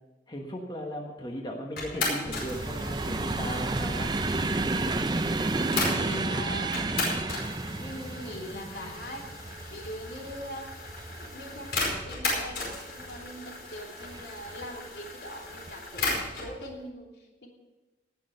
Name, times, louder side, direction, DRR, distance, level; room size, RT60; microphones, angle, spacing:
voice 1, 0.3-4.1, equal, 25° left, 1 dB, 1.2 m, -37 dB
sound 1, 1.8-6.2 6.7-16.5, left 2 dB, 60° left, 4.9 m, -36 dB
sound 2, 2.2-13.4 14.0-14.7 15.5-15.7 16.0-16.2, right 2 dB, 25° right, 0.5 m, -32 dB
voice 2, 5.7-6.8 7.8-10.7 11.1-17.5, equal, 75° left, -1 dB, 3.1 m, -42 dB
18.0 x 6.4 x 6.7 m, 1.1 s
head